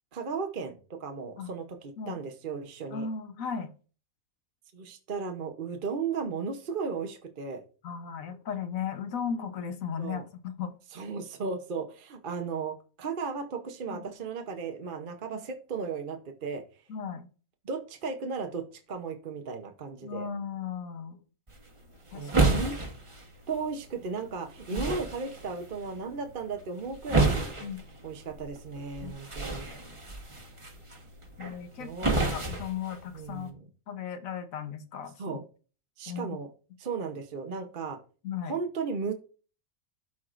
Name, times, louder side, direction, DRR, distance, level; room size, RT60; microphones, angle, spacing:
voice 1, 0.1-3.1 4.7-7.6 10.0-10.2 10.9-16.6 17.6-20.3 22.1-22.8 23.5-27.5 28.0-29.7 31.8-32.2 33.1-33.6 35.2-35.4 36.0-36.5 36.8-38.0 38.5-39.1, right 5 dB, 45° right, 5 dB, 0.9 m, -35 dB
voice 2, 2.9-3.7 7.8-10.7 13.9-14.0 15.3-15.4 16.9-17.3 20.0-21.2 22.1-22.7 24.7-24.9 27.6-27.8 29.0-29.1 31.4-31.9 32.2-33.5 33.9-35.4 36.1-36.4 38.2-38.5, left 7 dB, 75° left, 9 dB, 1.3 m, -36 dB
sound 1, 21.5-33.5, right 3 dB, 25° right, 1.1 m, -32 dB
12.5 x 4.7 x 2.5 m, 0.37 s
omnidirectional pair, 1.5 m